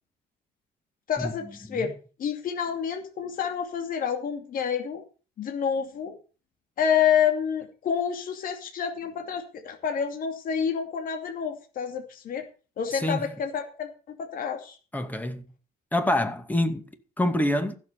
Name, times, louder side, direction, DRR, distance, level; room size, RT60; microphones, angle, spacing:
voice 1, 1.1-1.9 2.2-5.0 5.4-6.1 6.8-12.4 12.8-14.8, left 7 dB, 55° left, 2.7 m, -28 dB
voice 2, 12.9-13.3 14.9-15.4 15.9-17.7, left 1 dB, 10° left, 2.3 m, -27 dB
15.0 x 7.4 x 6.8 m
cardioid pair, 110°, 17 cm